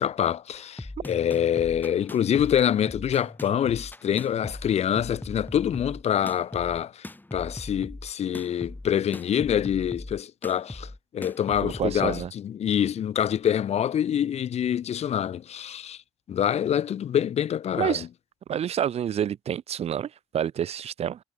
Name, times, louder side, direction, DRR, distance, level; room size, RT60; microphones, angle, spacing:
voice 1, 0.0-16.0 16.3-18.1, left 9 dB, 70° left, 0.9 m, -26 dB
sound 1, 0.5-12.3, left 2 dB, 15° left, 4.7 m, -40 dB
voice 2, 11.6-12.3 17.8-18.1 18.5-21.2, right 9 dB, 65° right, 0.6 m, -28 dB
cardioid pair, 65°, 12 cm